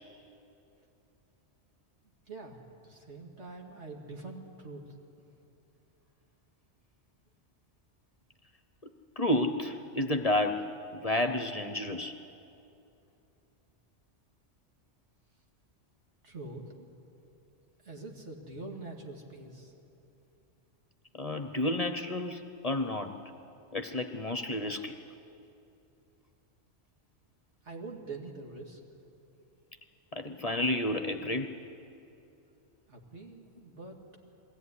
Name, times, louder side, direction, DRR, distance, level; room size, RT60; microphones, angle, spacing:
voice 1, 2.0-4.9 16.2-16.6 17.8-19.7 27.6-28.8 32.9-34.0, right 3 dB, 75° right, 0 dB, 2.5 m, -44 dB
voice 2, 9.2-10.6 10.9-12.1 21.2-23.1 23.7-24.9 30.1-31.5, left 1 dB, 35° left, 7 dB, 0.9 m, -30 dB
21.5 x 16.5 x 9.8 m, 2.8 s
omnidirectional pair, 1.2 m